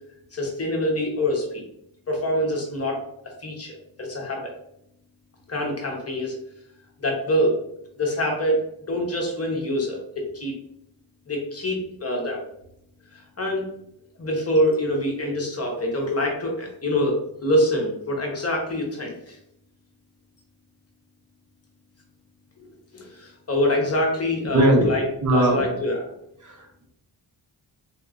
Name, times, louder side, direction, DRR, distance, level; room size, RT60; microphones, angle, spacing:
voice 1, 0.3-1.6 2.1-3.0 3.4-4.5 5.5-6.3 7.0-7.5 8.0-8.6 8.9-10.5 11.3-12.4 13.1-13.7 14.2-19.4 22.9-25.0 25.3-26.0, left 1 dB, 35° left, 0 dB, 0.7 m, -25 dB
voice 2, 24.5-25.6 26.4-26.9, right 1 dB, 45° right, 0 dB, 0.7 m, -21 dB
3.6 x 2.9 x 2.4 m, 0.76 s
wide cardioid pair, 150°, 45 cm